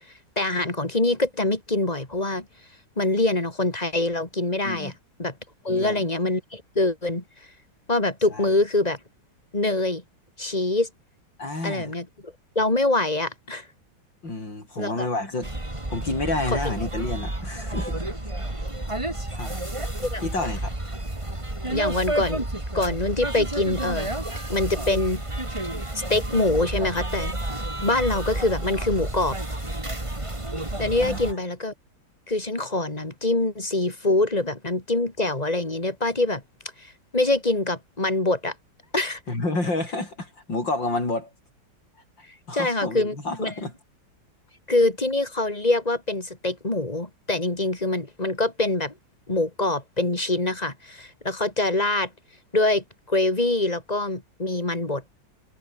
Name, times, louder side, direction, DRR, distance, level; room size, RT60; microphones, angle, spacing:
voice 1, 0.4-2.5 3.0-4.9 5.2-5.3 5.6-7.2 7.9-9.0 9.5-10.0 10.4-10.9 11.6-13.7 14.8-15.1 20.0-20.2 21.7-22.5 22.7-25.2 26.1-27.4 27.8-29.4 30.8-31.7 32.3-36.4 36.8-38.5 38.9-39.2 42.5-43.7 44.7-48.9 49.3-52.1 52.5-55.0, left 2 dB, 20° left, 3.5 m, -24 dB
voice 2, 5.7-6.0 8.3-8.5 11.4-11.9 14.2-15.5 15.9-18.0 19.3-19.6 20.2-20.7 31.0-31.2 39.3-41.3 42.5-43.7, left 2 dB, 65° left, 8.2 m, -29 dB
sound 1, 15.4-31.3, right 1 dB, 15° right, 3.2 m, -30 dB
omnidirectional pair, 2.2 m